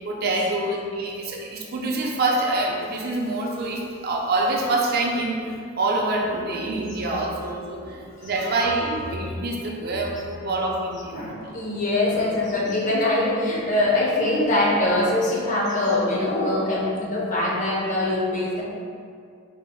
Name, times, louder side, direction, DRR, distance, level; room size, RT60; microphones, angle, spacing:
voice 1, 0.0-11.6, right 2 dB, 45° right, -1 dB, 0.4 m, -26 dB
voice 2, 11.1-18.6, left 1 dB, 35° left, -4 dB, 0.6 m, -23 dB
4.0 x 3.3 x 2.2 m, 2.2 s
head